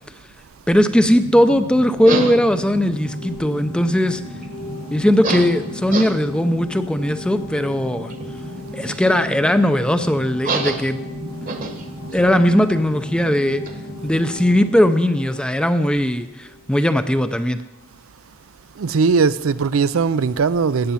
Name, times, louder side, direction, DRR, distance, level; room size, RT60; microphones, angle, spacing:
voice 1, 0.7-4.2 4.9-8.1 8.7-11.0 12.1-13.6 14.0-17.6, equal, 5° left, 0.5 m, -18 dB
sound 1, 0.7-14.9, right 2 dB, 40° right, 1.1 m, -31 dB
sound 2, 2.1-16.7, left 1 dB, 65° left, 4.0 m, -39 dB
voice 2, 18.7-20.9, right 5 dB, 80° right, 0.5 m, -19 dB
14.5 x 9.1 x 5.6 m
head